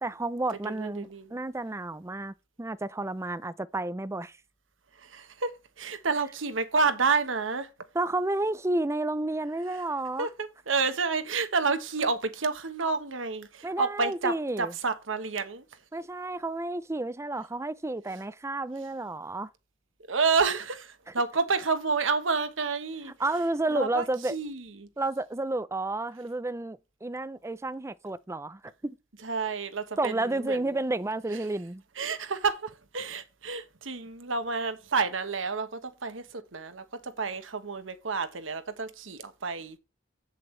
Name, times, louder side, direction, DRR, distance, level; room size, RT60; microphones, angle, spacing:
voice 1, 0.0-4.4 7.9-10.3 13.6-14.7 15.9-19.5 21.1-21.2 23.2-24.4 25.0-29.0 30.0-31.8, right 2 dB, 15° right, 0.5 m, -31 dB
voice 2, 0.8-1.3 5.1-5.5 5.8-7.7 10.2-15.6 20.1-23.1 23.7-24.0 24.3-24.9 29.2-30.6 32.0-39.8, right 4 dB, 90° right, 1.2 m, -29 dB
8.1 x 7.4 x 3.2 m
head